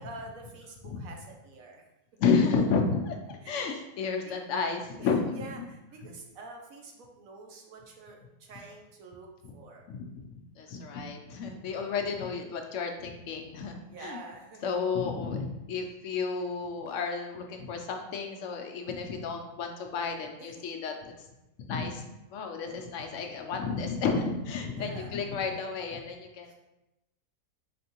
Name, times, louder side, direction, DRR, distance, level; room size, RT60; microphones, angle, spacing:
voice 1, 0.0-1.8 3.4-3.7 4.2-4.3 5.0-5.1 5.3-9.3 9.5-9.9 13.8-14.8 20.4-20.7 24.7-25.1 25.5-25.6 26.5-26.6, right 3 dB, 80° right, 1 dB, 1.2 m, -47 dB
voice 2, 2.2-5.5 9.4-9.5 9.9-14.2 14.6-21.1 21.7-22.0 22.3-26.5, left 5 dB, 70° left, 4 dB, 0.9 m, -31 dB
4.3 x 3.3 x 2.9 m, 0.97 s
omnidirectional pair, 1.4 m